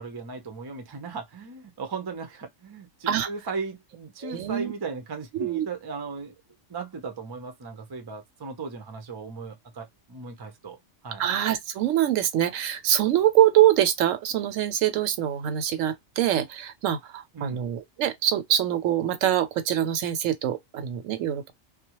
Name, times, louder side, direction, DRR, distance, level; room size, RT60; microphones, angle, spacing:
voice 1, 0.0-6.3 6.7-10.8 11.0-11.2 17.3-17.6, right 4 dB, 35° right, 0.4 m, -37 dB
voice 2, 4.2-4.7 5.3-5.7 11.2-21.5, right 11 dB, 90° right, 1.0 m, -24 dB
2.3 x 2.0 x 2.8 m
omnidirectional pair, 1.3 m